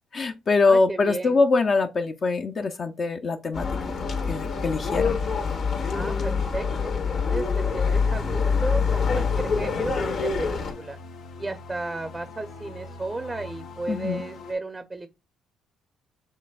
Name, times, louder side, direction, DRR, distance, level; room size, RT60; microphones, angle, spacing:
voice 1, 0.1-3.7 4.3-5.2 13.9-14.2, left 3 dB, 45° left, 0.5 m, -23 dB
voice 2, 0.6-1.4 5.9-11.0 11.4-15.2, right 2 dB, 20° right, 0.6 m, -34 dB
sound 1, 3.5-10.7, left 5 dB, 60° left, 1.4 m, -25 dB
sound 2, 7.6-14.5, left 2 dB, 85° left, 1.0 m, -41 dB
6.4 x 3.3 x 2.4 m
cardioid pair, 85°, 0 cm